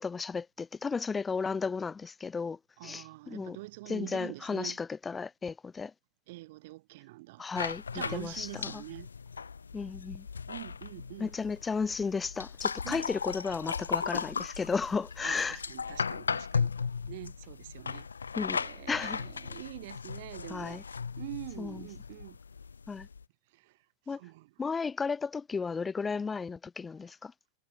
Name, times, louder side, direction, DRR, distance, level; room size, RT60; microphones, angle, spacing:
voice 1, 0.0-3.6 3.9-5.9 7.4-8.8 9.7-10.3 11.2-15.6 18.3-18.6 18.9-19.2 20.5-20.8 21.6-21.9 22.9-23.1 24.1-24.2 24.6-27.3, left 5 dB, 15° left, 4.1 m, -34 dB
voice 2, 2.8-4.8 6.3-7.4 7.9-9.1 10.5-11.3 12.8-13.0 15.2-16.7 17.1-18.1 18.6-20.8 21.2-22.4 24.2-24.5, right 20 dB, 50° right, 5.5 m, -44 dB
sound 1, 7.5-23.2, left 5 dB, 75° left, 2.2 m, -37 dB
figure-of-eight pair, 90°, 0 cm